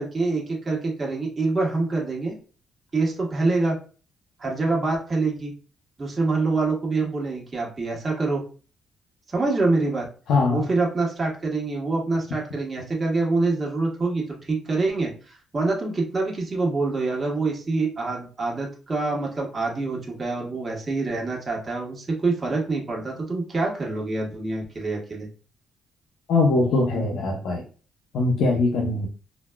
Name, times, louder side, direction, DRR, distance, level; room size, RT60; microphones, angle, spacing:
voice 1, 0.0-2.3 2.9-3.8 4.4-5.5 6.0-8.4 9.3-10.1 10.5-25.3, right 3 dB, 30° right, -2 dB, 1.2 m, -25 dB
voice 2, 10.3-10.6 26.3-27.6 28.1-29.1, left 3 dB, 75° left, -1 dB, 0.6 m, -21 dB
3.9 x 2.2 x 2.2 m, 0.38 s
cardioid pair, 90°, 0 cm